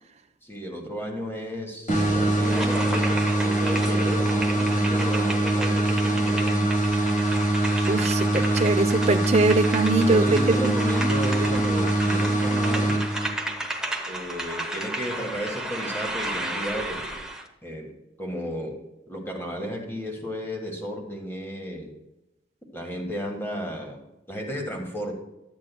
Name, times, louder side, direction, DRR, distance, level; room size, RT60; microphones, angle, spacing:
voice 1, 0.4-7.0 9.9-13.0 14.1-17.2 17.6-17.9 18.2-18.8 19.1-21.9 22.7-24.0 24.3-25.1, equal, 15° left, 1 dB, 1.5 m, -33 dB
sound 1, 1.9-13.6, right 2 dB, 45° left, 1.7 m, -23 dB
sound 2, 2.4-17.5, right 1 dB, 5° right, 0.8 m, -33 dB
voice 2, 7.9-10.2 10.6-10.7, right 3 dB, 40° right, 7 dB, 0.6 m, -22 dB
12.0 x 8.6 x 2.3 m, 0.92 s
head